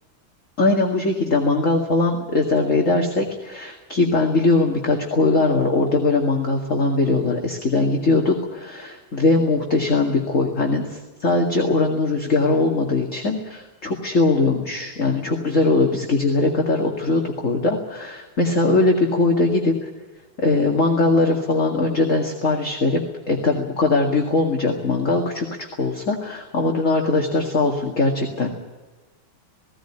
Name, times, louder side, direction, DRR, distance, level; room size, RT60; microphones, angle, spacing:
voice 1, 0.6-19.9 20.4-23.0 23.3-28.5, left 3 dB, 35° left, 1 dB, 2.5 m, -20 dB
19.0 x 17.5 x 10.0 m, 1.2 s
omnidirectional pair, 2.4 m